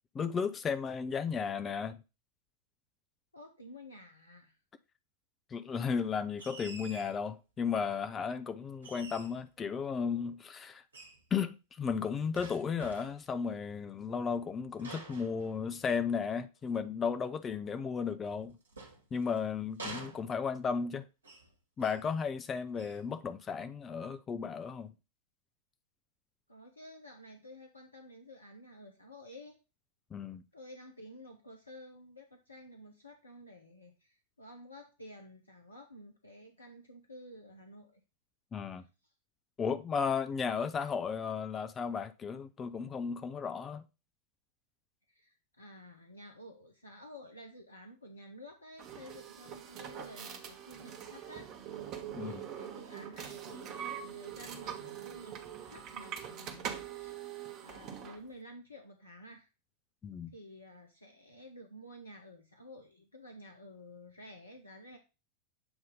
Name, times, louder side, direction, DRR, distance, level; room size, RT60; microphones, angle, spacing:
voice 1, 0.1-2.0 5.5-10.8 11.3-18.6 19.1-21.1 21.8-24.9 30.1-30.4 38.5-38.8 39.6-43.8 52.1-52.4 60.0-60.3, left 6 dB, 20° left, 0.4 m, -34 dB
voice 2, 3.3-4.6 26.5-29.6 30.5-38.0 39.0-39.1 45.1-51.5 52.1-55.4 55.7-57.2 57.6-59.5 60.3-65.0, equal, 80° left, 0.8 m, -52 dB
sound 1, 6.4-7.2 8.8-9.5 10.9-11.2 12.3-13.3 14.8-16.1 18.2-19.4 19.8-20.7 21.2-21.5 21.8-22.1 22.7-23.1, right 3 dB, 75° right, 1.3 m, -48 dB
sound 2, 48.8-58.2, right 9 dB, 35° right, 1.0 m, -43 dB
7.8 x 2.7 x 5.2 m
figure-of-eight pair, 90°, 0 cm